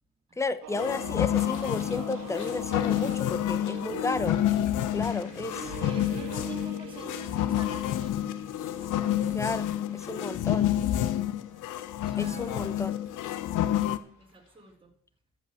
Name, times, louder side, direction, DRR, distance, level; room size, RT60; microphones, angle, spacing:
voice 1, 0.4-4.4 4.9-5.8 9.3-9.7 9.9-10.7 12.2-13.0, left 3 dB, 10° left, 13 dB, 0.8 m, -33 dB
sound 1, 0.6-13.9, right 7 dB, 80° right, 1.5 m, -46 dB
sound 2, 0.7-14.0, left 12 dB, 90° left, 0.7 m, -29 dB
sound 3, 1.5-14.7, left 3 dB, 65° left, 3.5 m, -58 dB
voice 2, 5.8-8.5 8.8-9.3 11.9-12.7 13.6-14.9, right 2 dB, 15° right, 3 dB, 2.6 m, -47 dB
13.5 x 5.5 x 7.0 m, 0.66 s
cardioid pair, 90°, 30 cm